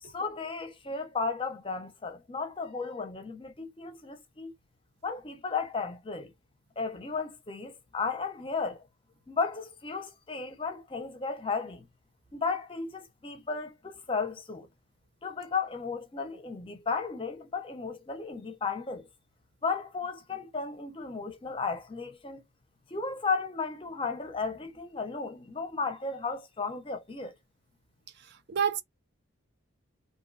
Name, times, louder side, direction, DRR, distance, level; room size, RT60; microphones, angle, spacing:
voice 1, 0.0-4.5 5.0-6.3 6.8-8.8 9.3-11.9 12.3-14.7 15.2-19.1 19.6-22.4 22.9-27.4, left 4 dB, 25° left, 0.5 m, -34 dB
voice 2, 28.3-28.8, right 7 dB, 55° right, 0.4 m, -29 dB
2.5 x 2.2 x 2.4 m
head